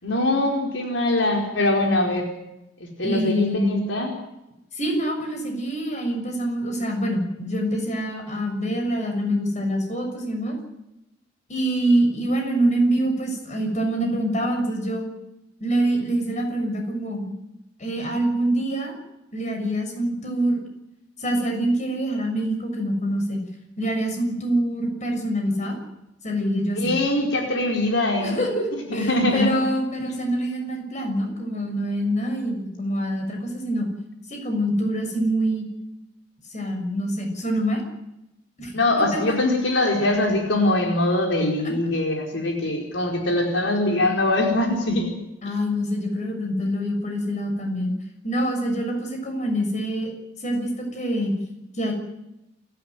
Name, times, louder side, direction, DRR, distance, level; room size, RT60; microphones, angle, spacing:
voice 1, 0.0-2.3 2.8-4.2 26.7-28.4 28.7-29.5 38.7-45.1, left 1 dB, 80° left, 1 dB, 4.7 m, -22 dB
voice 2, 3.0-3.7 4.7-10.6 11.5-15.1 15.6-17.3 17.8-18.9 19.3-20.6 21.2-23.4 23.8-25.8 26.2-26.9 28.2-33.9 34.3-35.7 36.5-37.8 38.6-38.7 39.1-39.4 41.6-41.7 45.4-47.9 48.2-50.1 50.4-51.3 51.8-51.9, right 1 dB, 40° left, 4 dB, 6.8 m, -25 dB
29.0 x 13.5 x 9.4 m, 0.90 s
head